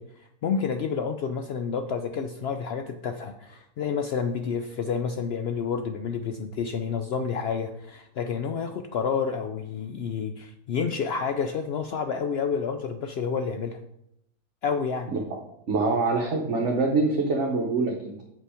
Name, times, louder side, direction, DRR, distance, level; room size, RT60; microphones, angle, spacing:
voice 1, 0.0-13.8 14.6-15.1, left 6 dB, 85° left, 6 dB, 0.5 m, -29 dB
voice 2, 15.7-18.2, right 3 dB, 55° right, 1 dB, 1.2 m, -24 dB
7.5 x 5.4 x 4.9 m, 0.79 s
omnidirectional pair, 1.6 m